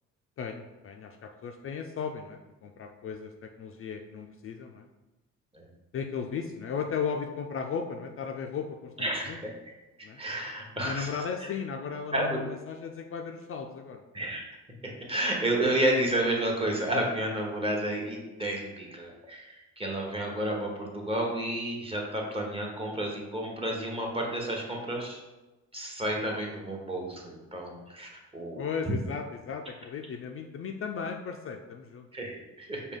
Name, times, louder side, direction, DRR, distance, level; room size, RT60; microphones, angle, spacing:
voice 1, 0.4-4.9 5.9-9.4 10.0-10.2 10.7-14.0 28.6-32.1, left 6 dB, 45° left, 3 dB, 0.4 m, -36 dB
voice 2, 9.0-9.5 10.0-11.1 11.4-11.5 12.1-12.4 14.1-14.5 14.8-25.2 25.7-28.6 32.1-32.8, right 1 dB, 20° right, -1 dB, 1.0 m, -31 dB
5.0 x 2.3 x 3.6 m, 1.1 s
cardioid pair, 90°, 30 cm